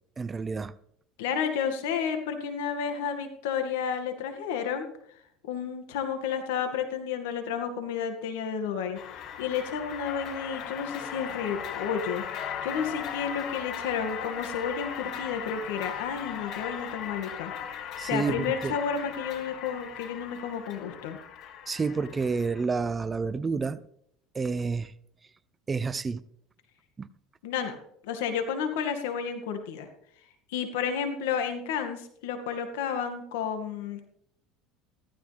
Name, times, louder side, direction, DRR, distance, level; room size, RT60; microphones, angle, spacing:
voice 1, 0.2-0.7 18.0-18.8 21.7-23.8 24.3-24.9 25.7-26.2 27.0-27.1, right 4 dB, 20° right, 0.6 m, -29 dB
voice 2, 1.2-4.9 5.5-9.0 9.4-17.5 18.0-21.2 27.4-27.8 28.0-29.9 30.5-34.1, left 7 dB, 90° left, 2.2 m, -31 dB
sound 1, 8.9-22.6, left 8 dB, 55° left, 1.5 m, -38 dB
15.0 x 14.0 x 3.5 m
supercardioid pair, 120°, 0 cm